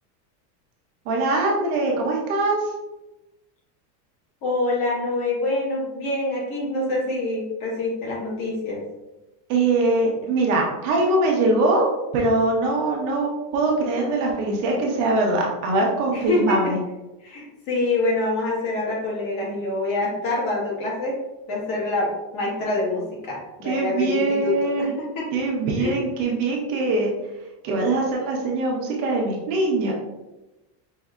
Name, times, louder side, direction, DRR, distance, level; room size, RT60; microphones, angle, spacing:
voice 1, 1.1-2.6 9.5-16.8 23.6-25.0 25.3-27.1 27.6-29.9, right 2 dB, 50° right, -1 dB, 0.9 m, -22 dB
voice 2, 4.4-8.8 16.1-16.7 17.2-21.2 21.5-25.3 25.8-26.0, left 2 dB, 45° left, -4 dB, 1.3 m, -26 dB
5.4 x 2.7 x 2.3 m, 1.0 s
cardioid pair, 175°, 48 cm